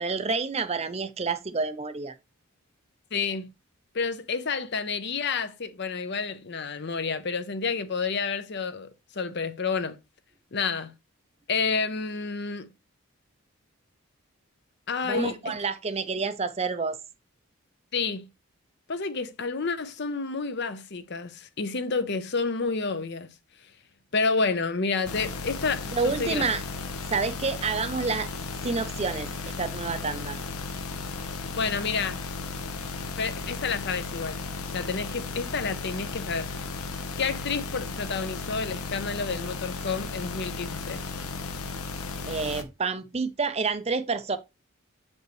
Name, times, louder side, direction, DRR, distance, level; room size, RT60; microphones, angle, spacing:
voice 1, 0.0-2.1 15.1-17.0 25.9-26.6 27.1-28.3 28.6-30.4 42.3-44.4, right 4 dB, 30° right, 0.5 m, -29 dB
voice 2, 3.1-3.5 3.9-10.0 10.5-10.9 11.5-12.7 14.9-15.6 17.9-18.3 18.9-23.3 23.6-23.7 24.1-26.4 31.5-32.2 33.2-36.5 37.2-41.0, left 4 dB, 50° left, 0.8 m, -30 dB
sound 1, 25.0-42.6, left 4 dB, 80° left, 1.1 m, -35 dB
8.0 x 5.4 x 3.1 m
head